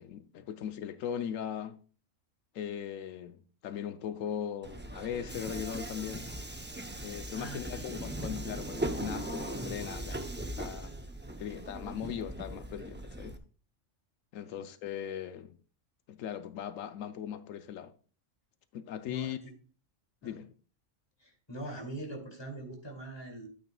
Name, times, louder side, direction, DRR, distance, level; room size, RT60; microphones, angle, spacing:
voice 1, 0.0-1.8 2.5-6.3 7.0-10.9 11.4-13.4 14.3-15.6 16.1-17.9 18.7-19.4 20.2-20.5, left 9 dB, 85° left, 1.0 m, -39 dB
Subway metro underground, 4.6-13.4, right 1 dB, 15° right, 0.4 m, -39 dB
voice 2, 7.0-7.9 14.5-14.6 19.1-19.5 20.2-20.4 21.2-23.5, right 2 dB, 20° left, 2.6 m, -43 dB
12.5 x 8.9 x 2.3 m
omnidirectional pair, 1.3 m